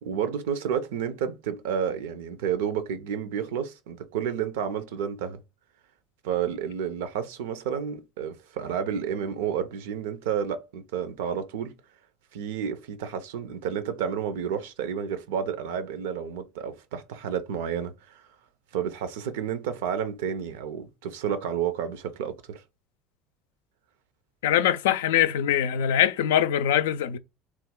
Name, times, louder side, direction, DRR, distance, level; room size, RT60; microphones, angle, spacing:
voice 1, 0.0-5.4 6.2-11.7 12.3-18.2 18.7-22.6, right 8 dB, 80° right, 0.5 m, -30 dB
voice 2, 24.4-27.2, left 10 dB, 80° left, 0.3 m, -23 dB
3.1 x 2.3 x 3.6 m
hypercardioid pair, 75°, 0 cm